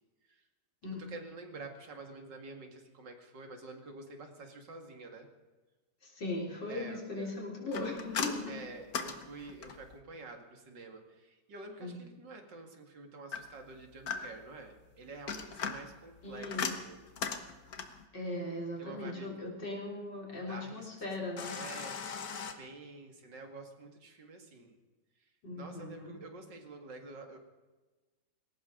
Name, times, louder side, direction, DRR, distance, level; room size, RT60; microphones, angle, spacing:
voice 1, 1.0-5.3 6.7-7.3 8.5-16.5 16.7-17.0 18.8-19.3 20.5-20.7 21.6-24.7 25.5-27.4, right 3 dB, 80° right, 4 dB, 2.7 m, -48 dB
voice 2, 6.0-8.6 11.8-12.0 16.2-16.8 18.1-21.6 25.4-26.2, left 2 dB, 75° left, -2 dB, 4.3 m, -39 dB
sound 1, 7.7-10.0 13.3-14.6 15.1-18.1 21.4-22.5, left 6 dB, 60° left, 1.7 m, -38 dB
20.0 x 17.5 x 3.8 m, 1.2 s
omnidirectional pair, 1.9 m